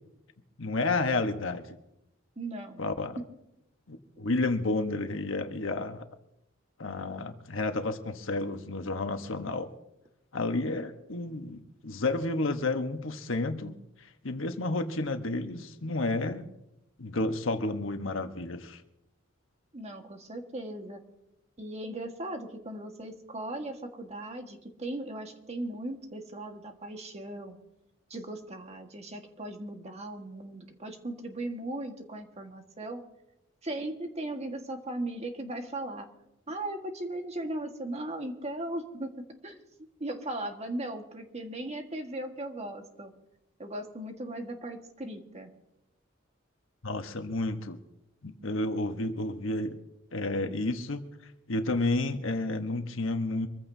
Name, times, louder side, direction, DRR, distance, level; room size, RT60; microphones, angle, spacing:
voice 1, 0.6-1.8 2.8-3.2 3.9-6.0 6.8-9.7 10.3-13.8 14.2-16.5 17.0-18.8 46.8-47.8 48.2-49.8 50.1-51.0 51.5-53.5, left 2 dB, 80° left, 7 dB, 1.2 m, -31 dB
voice 2, 2.4-2.8 19.7-21.0 21.6-27.6 28.1-33.0 33.6-36.1 36.5-39.7 40.0-43.1 43.6-45.5, right 1 dB, 35° right, 4 dB, 1.6 m, -38 dB
25.0 x 15.0 x 2.8 m, 0.88 s
head